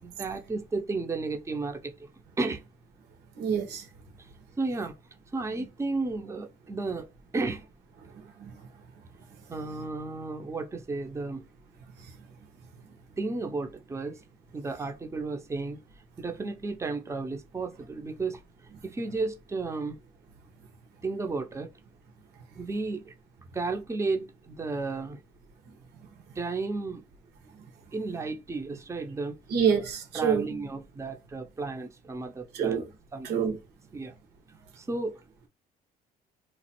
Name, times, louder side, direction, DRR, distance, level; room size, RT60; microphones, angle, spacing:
voice 1, 0.0-2.1 2.4-2.6 4.6-4.9 5.3-7.1 7.3-7.7 9.5-11.4 13.2-14.2 14.5-15.8 16.2-18.4 18.8-20.0 21.0-21.7 22.6-23.1 23.5-25.2 26.4-27.0 27.9-29.4 30.1-32.8 33.1-33.5 33.9-34.1 34.8-35.1, right 3 dB, 15° right, 0.7 m, -33 dB
voice 2, 3.4-3.8 8.4-8.5 29.5-30.4 32.5-32.8 33.2-33.6, right 7 dB, 80° right, 1.5 m, -26 dB
3.1 x 2.4 x 4.3 m
cardioid pair, 110°, 17 cm